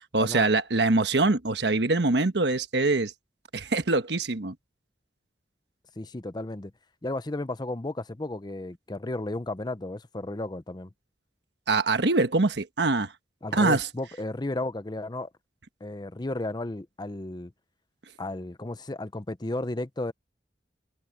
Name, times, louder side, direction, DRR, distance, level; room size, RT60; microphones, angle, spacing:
voice 1, 0.1-3.1 3.5-4.5 11.7-13.1 13.5-13.9, right 3 dB, 70° right, 1.3 m, -24 dB
voice 2, 6.0-6.7 7.0-10.9 13.4-15.3 15.8-17.5 18.2-20.1, left 2 dB, 25° left, 0.7 m, -33 dB
head